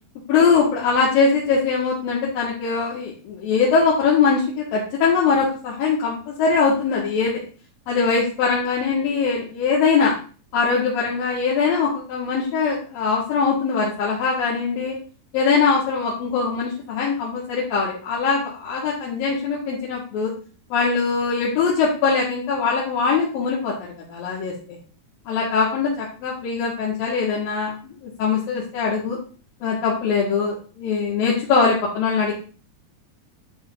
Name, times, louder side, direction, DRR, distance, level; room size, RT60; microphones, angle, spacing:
voice 1, 0.3-7.4 7.9-10.1 10.5-15.0 15.3-20.3 20.7-24.5 25.3-29.2 29.6-32.3, left 5 dB, 70° left, -5 dB, 3.4 m, -22 dB
11.0 x 7.7 x 2.6 m, 0.38 s
omnidirectional pair, 4.4 m